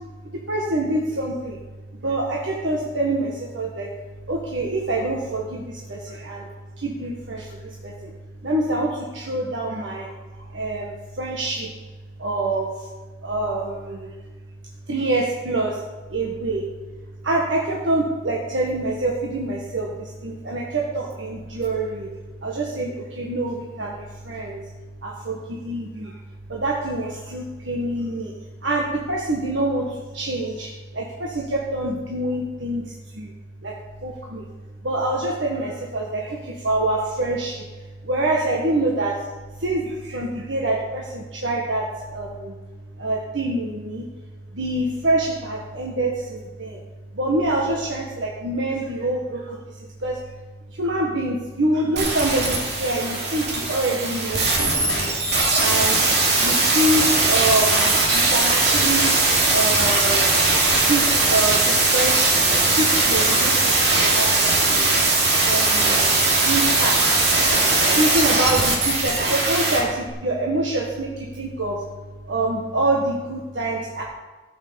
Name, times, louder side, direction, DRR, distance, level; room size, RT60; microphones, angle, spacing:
voice 1, 0.3-1.6 2.0-3.9 4.3-6.5 6.8-8.1 8.4-10.1 10.5-11.7 12.2-12.7 13.2-14.1 14.9-15.8 16.1-16.7 17.2-22.1 22.4-24.0 24.2-24.6 25.0-26.1 26.5-28.3 28.6-32.8 33.1-33.3 33.6-33.7 34.0-34.5 34.8-37.6 38.0-39.2 39.6-42.6 43.0-44.0 44.5-46.8 47.1-49.6 50.0-50.2 50.8-55.1 55.5-56.0 56.4-59.1 59.5-60.4 60.8-63.9 64.2-64.9 65.4-66.0 66.4-67.0 68.0-71.8 72.3-74.0, right 2 dB, 85° right, -2 dB, 1.6 m, -25 dB
sound 1, 52.0-69.8 70.1-70.2, right 3 dB, 60° right, 2.9 m, -19 dB
14.0 x 6.5 x 7.0 m, 1.3 s
head